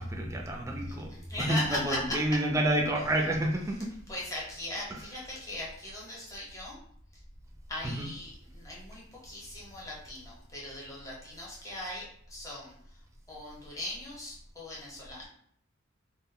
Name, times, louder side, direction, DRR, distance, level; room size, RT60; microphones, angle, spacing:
voice 1, 0.0-1.1 1.4-3.9 7.8-8.1, right 1 dB, 15° right, 1 dB, 0.3 m, -29 dB
voice 2, 1.1-2.2 4.1-6.8 7.7-12.7 13.3-15.3, left 1 dB, 15° left, -5 dB, 0.8 m, -39 dB
2.1 x 2.1 x 3.6 m, 0.67 s
head